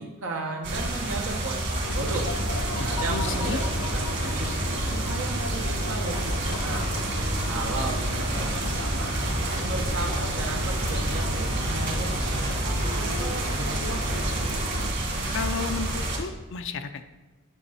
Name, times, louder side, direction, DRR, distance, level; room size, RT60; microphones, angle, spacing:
voice 1, 0.0-2.3 2.8-3.6 3.9-6.9 7.5-9.2 9.6-14.2, right 3 dB, 80° right, -1 dB, 1.0 m, -35 dB
sound 1, 0.6-16.2, right 1 dB, 55° right, 2.1 m, -29 dB
sound 2, 1.8-14.9, left 1 dB, 80° left, 0.9 m, -34 dB
voice 2, 2.8-3.6 15.3-17.1, left 5 dB, 65° left, 9 dB, 0.5 m, -33 dB
sound 3, 7.7-14.5, equal, 5° right, 0.5 m, -34 dB
9.0 x 6.6 x 4.2 m, 1.1 s
head